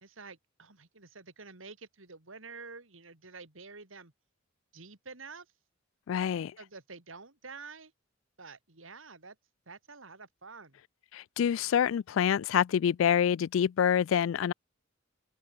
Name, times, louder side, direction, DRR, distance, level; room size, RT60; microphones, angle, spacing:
voice 1, 0.0-4.1 4.7-5.5 6.6-7.9 8.4-9.4 9.7-10.8, right 4 dB, 80° right, 3.0 m, -48 dB
voice 2, 6.1-6.5 11.1-14.5, left 8 dB, 75° left, 0.3 m, -26 dB
open air
head